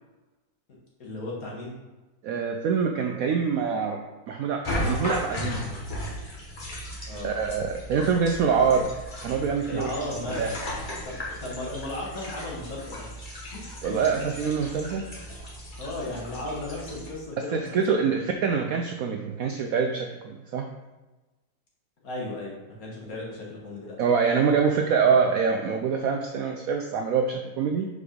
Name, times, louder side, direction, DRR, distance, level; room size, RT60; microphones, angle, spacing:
voice 1, 1.0-1.8 7.1-7.3 9.7-10.6 11.0-13.1 13.5-13.7 14.1-14.2 15.8-18.0 22.0-23.9, left 1 dB, 55° left, -3 dB, 1.9 m, -35 dB
voice 2, 2.2-5.6 7.2-8.9 9.2-10.0 10.4-10.5 13.8-15.3 17.5-20.6 24.0-27.9, right 6 dB, 75° right, 4 dB, 0.8 m, -25 dB
sound 1, 4.6-17.1, left 1 dB, 30° left, 1.2 m, -36 dB
5.2 x 4.6 x 5.0 m, 1.1 s
omnidirectional pair, 1.9 m